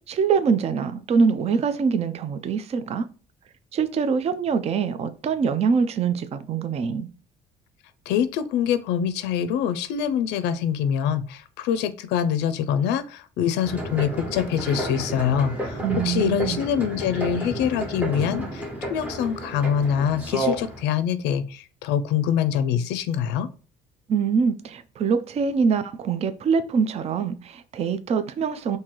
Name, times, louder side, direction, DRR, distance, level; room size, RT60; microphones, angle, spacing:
voice 1, 0.1-3.1 3.7-7.1 15.8-16.6 24.1-28.8, right 5 dB, 40° right, 0.4 m, -24 dB
voice 2, 8.1-23.5, left 8 dB, 90° left, 0.4 m, -25 dB
sound 1, 13.6-20.8, right 1 dB, 10° right, 1.1 m, -31 dB
3.7 x 2.7 x 3.0 m
cardioid pair, 110°, 17 cm